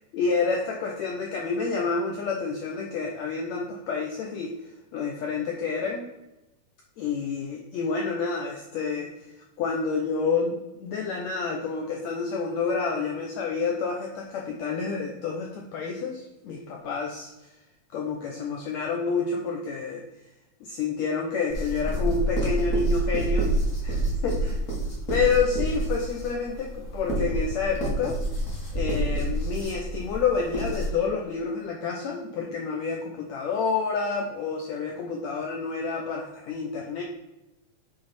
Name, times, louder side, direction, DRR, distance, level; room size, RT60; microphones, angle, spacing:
voice 1, 0.1-4.5 4.9-6.1 7.0-9.1 9.6-17.3 17.9-20.0 20.6-23.5 23.8-24.6 25.1-28.2 28.7-37.0, left 5 dB, 80° left, 0 dB, 1.6 m, -29 dB
sound 1, 21.5-30.9, right 1 dB, 35° left, 1.2 m, -28 dB
7.6 x 4.0 x 4.2 m, 0.96 s
omnidirectional pair, 3.9 m